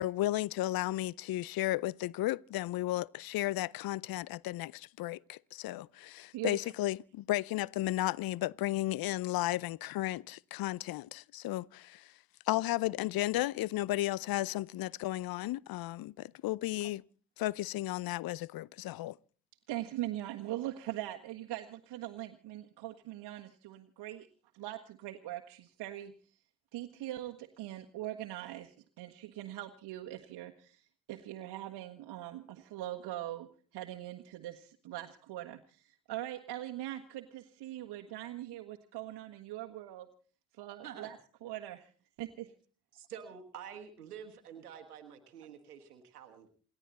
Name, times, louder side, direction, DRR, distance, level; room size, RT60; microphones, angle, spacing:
voice 1, 0.0-12.1 12.5-17.0 17.4-19.1, left 16 dB, 55° left, 0.7 m, -34 dB
voice 2, 19.7-24.3 24.5-26.1 26.7-30.8 31.1-40.1 40.6-41.2 41.4-41.9 42.2-42.5, right 14 dB, 65° right, 1.5 m, -41 dB
voice 3, 42.9-46.5, right 8 dB, 90° right, 1.4 m, -48 dB
28.0 x 11.5 x 4.1 m
hypercardioid pair, 45°, 44 cm